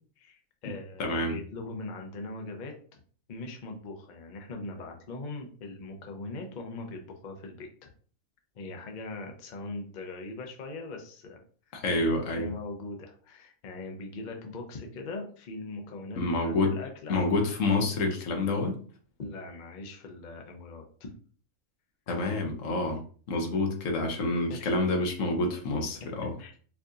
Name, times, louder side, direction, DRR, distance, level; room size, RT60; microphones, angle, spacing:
voice 1, 0.2-3.0 3.3-7.7 8.5-11.4 12.3-17.2 19.2-21.1 24.5-24.7 26.4-26.5, left 2 dB, 45° left, 0.7 m, -40 dB
voice 2, 1.0-1.4 11.7-12.5 16.2-16.8 17.1-18.8 22.1-26.3, left 2 dB, 75° left, 1.2 m, -28 dB
4.5 x 2.7 x 2.5 m
omnidirectional pair, 1.4 m